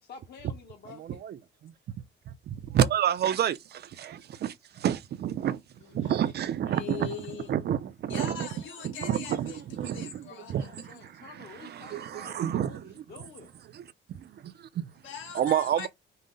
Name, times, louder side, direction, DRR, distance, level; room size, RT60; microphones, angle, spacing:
voice 1, 0.0-1.0 10.2-13.5, left 5 dB, 55° left, 1.3 m, -49 dB
voice 2, 1.0-1.7 2.3-5.6 5.9-7.2 7.5-8.5 8.8-11.3 11.6-12.8 13.7-13.8 14.1-14.9 15.3-15.9, right 10 dB, 55° right, 0.4 m, -30 dB
voice 3, 5.8-6.1 6.6-7.5 8.1-10.5 15.0-15.9, left 8 dB, 75° left, 1.5 m, -41 dB
5.4 x 2.1 x 3.8 m
cardioid pair, 90°, 20 cm